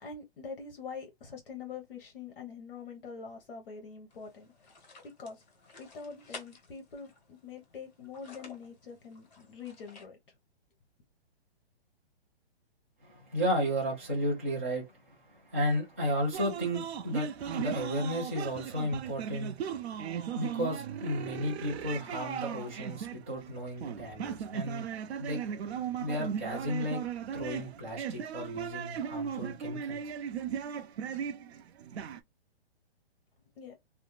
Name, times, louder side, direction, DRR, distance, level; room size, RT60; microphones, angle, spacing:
voice 1, 0.0-4.7 5.0-5.4 5.8-10.2 33.6-33.7, left 5 dB, 60° left, 0.9 m, -44 dB
sound 1, 4.1-10.1, left 3 dB, 40° left, 1.4 m, -53 dB
voice 2, 13.0-19.5 20.3-24.8 25.2-25.4 26.0-27.0 27.3-30.1, equal, 15° right, 0.3 m, -33 dB
sound 2, 16.3-32.2, right 8 dB, 80° right, 0.5 m, -37 dB
2.5 x 2.1 x 3.0 m
hypercardioid pair, 165°, 32 cm